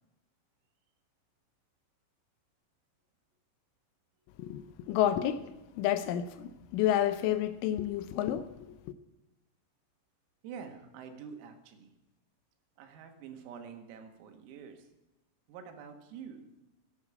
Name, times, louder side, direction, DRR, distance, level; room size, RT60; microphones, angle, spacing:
voice 1, 4.9-5.4 5.8-8.5, left 11 dB, 80° left, 3.0 m, -29 dB
voice 2, 10.4-11.9 12.8-14.9 15.5-16.5, right 7 dB, 85° right, 4.4 m, -47 dB
12.0 x 9.8 x 8.5 m
omnidirectional pair, 6.0 m